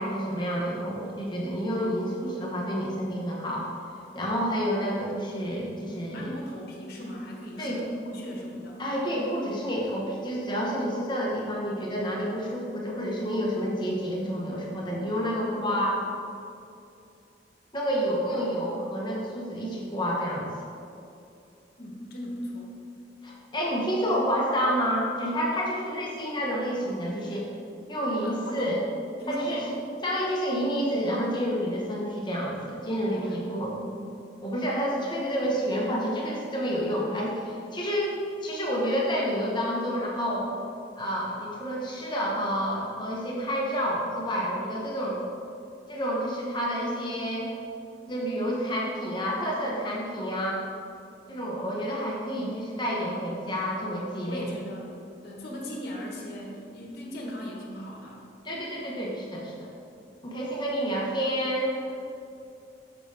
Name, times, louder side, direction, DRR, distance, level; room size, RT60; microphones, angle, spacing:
voice 1, 0.0-3.7 4.1-6.4 7.6-7.8 8.8-16.0 17.7-20.5 23.2-27.5 27.9-28.8 29.3-29.6 30.0-33.7 34.4-40.5 41.0-45.2 45.9-47.5 48.1-50.6 51.3-54.5 58.4-59.7 60.2-61.7, equal, 25° left, -3 dB, 1.2 m, -29 dB
voice 2, 5.9-8.8 21.8-22.7 28.2-28.8 29.2-29.7 33.1-33.9 52.3-52.6 54.3-54.9 55.2-58.2 61.9-62.0, equal, 60° left, -2 dB, 1.4 m, -38 dB
7.2 x 6.4 x 3.4 m, 2.6 s
head